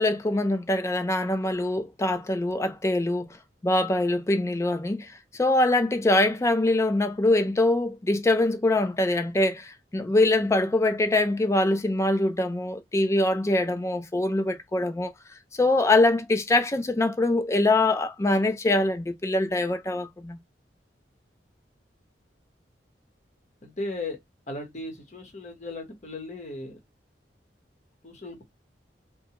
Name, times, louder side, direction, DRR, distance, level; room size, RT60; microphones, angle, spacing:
voice 1, 0.0-3.4 3.6-15.1 15.5-20.4, left 2 dB, 15° left, 0.3 m, -23 dB
voice 2, 23.6-24.2 24.5-26.8 28.0-28.4, left 2 dB, 40° left, 0.9 m, -36 dB
2.2 x 2.1 x 2.8 m
head